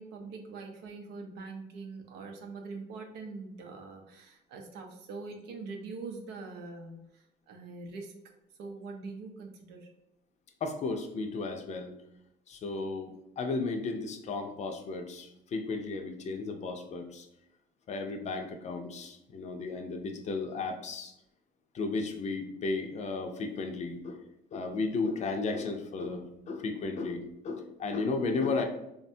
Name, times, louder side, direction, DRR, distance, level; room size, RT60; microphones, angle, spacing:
voice 1, 0.0-8.1 8.6-9.9, right 4 dB, 85° right, 3 dB, 0.6 m, -43 dB
voice 2, 10.6-11.9 12.5-17.3 17.9-21.1 21.7-24.2 24.5-28.6, left 3 dB, 45° left, 5 dB, 0.5 m, -34 dB
3.4 x 2.1 x 2.6 m, 0.83 s
cardioid pair, 110°, 17 cm